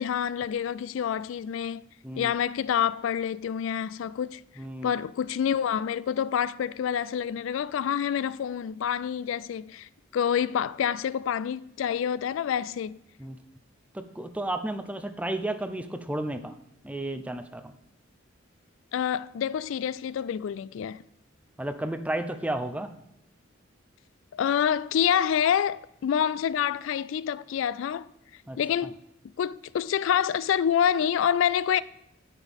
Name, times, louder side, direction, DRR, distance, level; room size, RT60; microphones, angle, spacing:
voice 1, 0.0-1.9 2.2-4.4 4.8-13.0 18.9-21.0 24.3-28.1 28.6-29.0 29.4-31.8, left 8 dB, 70° left, 0.3 m, -27 dB
voice 2, 4.6-4.9 13.2-13.4 13.9-16.6 16.8-17.7 21.6-22.9 28.5-28.6, right 1 dB, 5° right, 0.5 m, -32 dB
9.9 x 9.3 x 3.5 m
head